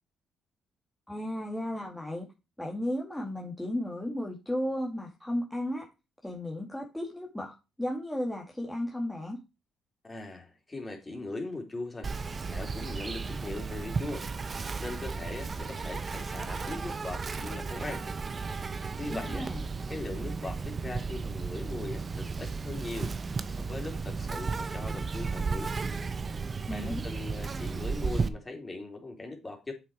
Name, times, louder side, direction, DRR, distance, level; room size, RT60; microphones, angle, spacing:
voice 1, 1.1-2.3 2.6-5.9 6.2-9.4 19.1-19.6 26.7-27.1, left 1 dB, 10° left, -1 dB, 2.1 m, -34 dB
voice 2, 10.0-12.1 12.5-14.3 14.5-18.0 19.0-19.5 19.9-25.7 26.7-29.7, left 2 dB, 25° left, 2 dB, 3.6 m, -40 dB
Insect, 12.0-28.3, right 4 dB, 40° right, 1.0 m, -34 dB
7.7 x 6.1 x 4.5 m, 0.28 s
supercardioid pair, 60°, 0 cm